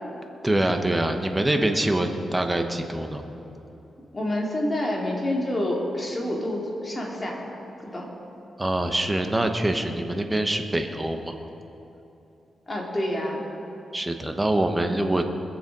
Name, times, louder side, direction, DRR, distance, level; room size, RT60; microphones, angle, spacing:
voice 1, 0.4-3.2 8.6-11.4 13.9-15.2, right 1 dB, 15° right, 5 dB, 1.0 m, -24 dB
voice 2, 4.1-7.4 7.8-8.1 12.7-13.4, left 1 dB, 20° left, -2 dB, 2.5 m, -27 dB
21.0 x 7.2 x 5.3 m, 3.0 s
cardioid pair, 115°, 0 cm